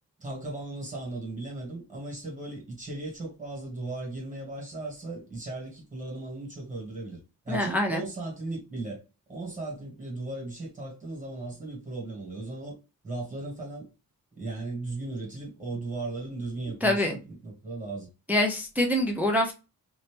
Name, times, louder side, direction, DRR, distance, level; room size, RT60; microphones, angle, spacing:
voice 1, 0.2-7.2 7.4-9.0 9.3-12.8 13.0-13.9 14.4-18.1, right 2 dB, 20° right, 1.6 m, -36 dB
voice 2, 7.5-8.0 16.8-17.2 18.3-19.5, left 1 dB, 5° right, 0.4 m, -25 dB
2.7 x 2.7 x 3.4 m
wide cardioid pair, 140°, 37 cm